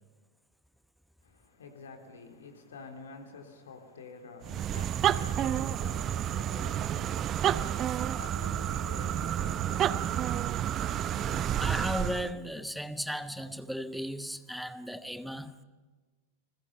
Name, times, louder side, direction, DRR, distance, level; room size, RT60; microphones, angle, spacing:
voice 1, 1.2-11.4, left 4 dB, 65° left, 3.5 m, -49 dB
sound 1, 4.4-12.3, right 10 dB, 30° right, 0.6 m, -30 dB
voice 2, 11.1-15.6, equal, ahead, 1.1 m, -36 dB
29.5 x 21.0 x 5.6 m
figure-of-eight pair, 90°, 0 cm